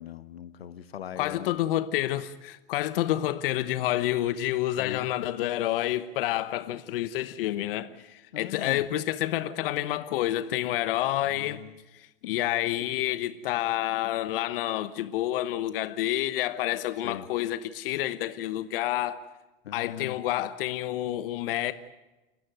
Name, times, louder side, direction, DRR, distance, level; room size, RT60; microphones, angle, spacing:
voice 1, 0.0-1.6 4.8-5.1 8.3-8.8 11.2-11.7 17.0-17.3 19.6-20.2, left 10 dB, 90° left, 1.3 m, -40 dB
voice 2, 1.2-11.6 11.9-19.2 19.7-21.7, left 14 dB, 70° left, 1.2 m, -29 dB
29.5 x 14.0 x 9.1 m
hypercardioid pair, 105°, 29 cm